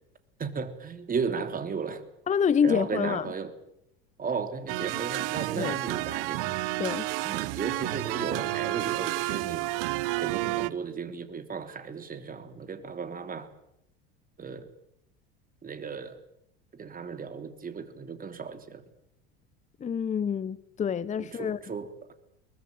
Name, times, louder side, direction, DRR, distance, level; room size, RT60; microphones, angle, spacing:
voice 1, 0.4-2.0 2.6-3.5 4.2-6.5 7.2-9.7 10.2-13.5 14.4-14.7 15.6-16.2 16.7-18.8 21.2-22.1, right 5 dB, 30° right, 3.4 m, -35 dB
voice 2, 2.3-3.3 5.6-5.8 6.8-7.1 19.8-21.6, left 7 dB, 25° left, 0.9 m, -27 dB
sound 1, 4.7-10.7, right 20 dB, 70° right, 1.1 m, -30 dB
22.5 x 20.0 x 9.3 m
hypercardioid pair, 80°, 30 cm